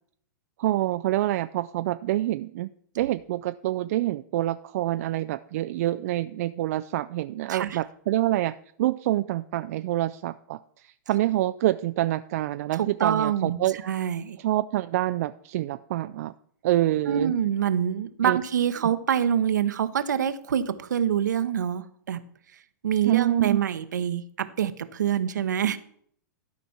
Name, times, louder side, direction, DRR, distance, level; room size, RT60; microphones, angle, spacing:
voice 1, 0.6-2.7 3.0-8.5 8.8-13.8 14.4-16.3 16.6-17.3 18.2-18.4 23.0-23.6, right 15 dB, 55° right, 11 dB, 0.4 m, -26 dB
voice 2, 12.8-13.6 13.8-14.4 17.1-22.2 22.8-25.8, right 9 dB, 70° right, 12 dB, 0.9 m, -25 dB
12.5 x 5.1 x 5.8 m, 0.63 s
figure-of-eight pair, 110°, 10 cm